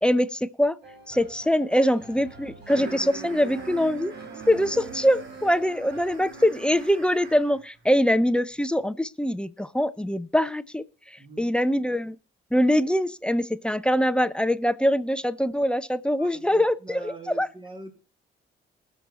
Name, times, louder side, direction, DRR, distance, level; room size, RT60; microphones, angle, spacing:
voice 1, 0.0-0.8 1.1-4.1 4.5-12.2 12.5-17.5, equal, 5° left, 0.7 m, -23 dB
sound 1, 0.8-6.2, right 4 dB, 55° right, 2.7 m, -46 dB
sound 2, 2.7-7.6, right 5 dB, 75° right, 2.7 m, -40 dB
voice 2, 11.2-11.5 16.2-18.0, right 3 dB, 25° right, 2.9 m, -43 dB
19.5 x 7.0 x 4.2 m
cardioid pair, 90°, 20 cm